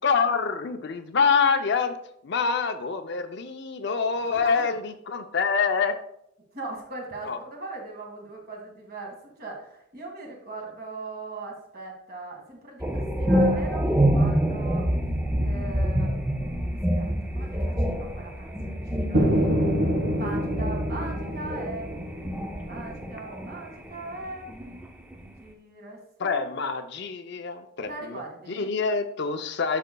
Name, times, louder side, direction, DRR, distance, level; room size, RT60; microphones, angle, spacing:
voice 1, 0.0-2.0 2.2-6.0 7.2-7.4 26.2-28.2 28.5-29.8, left 5 dB, 55° left, 8 dB, 0.5 m, -26 dB
voice 2, 6.5-14.9 15.4-16.6 17.0-19.5 20.2-22.3 22.6-24.8 25.1-26.6 27.9-28.7, right 2 dB, 45° right, 0 dB, 1.7 m, -40 dB
sound 1, 12.8-23.6 23.9-25.2, equal, 5° right, 0.5 m, -27 dB
sound 2, 19.1-23.0, equal, 75° right, 1.4 m, -26 dB
12.0 x 5.1 x 2.2 m, 0.74 s
head